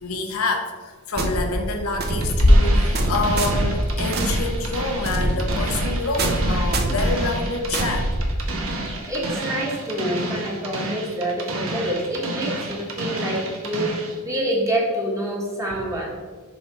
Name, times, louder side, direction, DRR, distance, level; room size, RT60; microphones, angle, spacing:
voice 1, 0.0-8.1, left 3 dB, 75° left, 4 dB, 0.9 m, -27 dB
sound 1, 1.2-8.8, right 1 dB, 45° right, 0.8 m, -25 dB
sound 2, 2.2-14.2, right 2 dB, 65° right, 1.2 m, -30 dB
sound 3, 2.4-4.5, left 1 dB, 50° left, 0.9 m, -20 dB
voice 2, 9.1-16.1, right 1 dB, 15° right, -3 dB, 1.3 m, -27 dB
6.1 x 5.7 x 4.2 m, 1.4 s
head